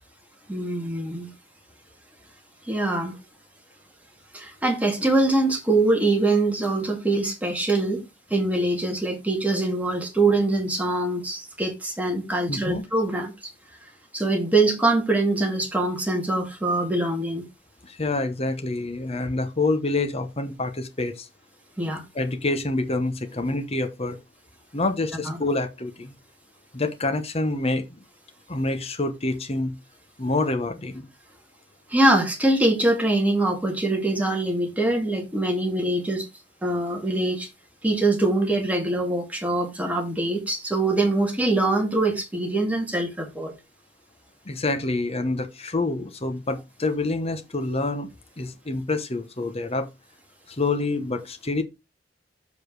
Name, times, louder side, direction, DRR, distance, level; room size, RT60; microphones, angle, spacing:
voice 1, 0.5-1.3 2.7-3.2 4.3-8.0 8.3-13.3 14.1-17.5 21.8-22.0 25.3-25.4 31.9-36.3 36.6-37.5 37.8-43.5, right 2 dB, 10° right, 2.2 m, -23 dB
voice 2, 12.5-12.8 17.8-21.3 22.1-24.2 24.7-26.1 26.7-28.0 28.5-29.7 30.2-31.1 44.5-48.1 48.4-49.9 50.5-51.6, left 2 dB, 35° left, 1.0 m, -27 dB
7.2 x 5.0 x 4.8 m
head